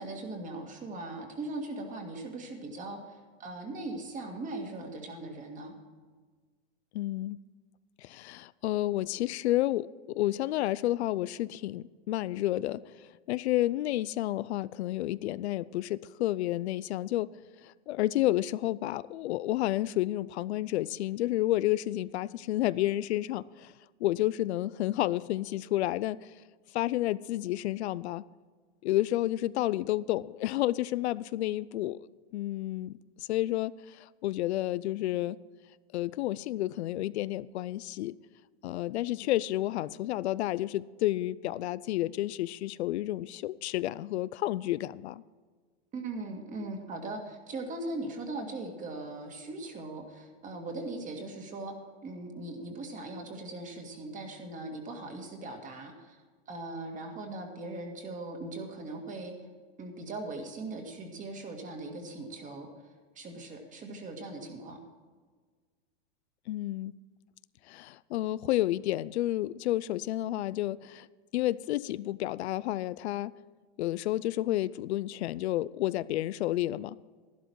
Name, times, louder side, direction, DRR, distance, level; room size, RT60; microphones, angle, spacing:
voice 1, 0.0-5.7 45.9-51.7 52.0-56.2 56.5-59.3 59.8-62.7 63.2-64.8, right 2 dB, 25° right, 3 dB, 2.0 m, -39 dB
voice 2, 6.9-7.4 8.0-23.7 24.0-26.3 26.7-28.2 28.8-32.1 32.3-35.4 35.9-38.1 38.6-45.2 66.5-66.9 67.7-71.1 71.3-73.3 73.8-77.0, left 15 dB, 80° left, 18 dB, 0.5 m, -30 dB
12.0 x 11.5 x 4.7 m, 1.5 s
supercardioid pair, 140°, 32 cm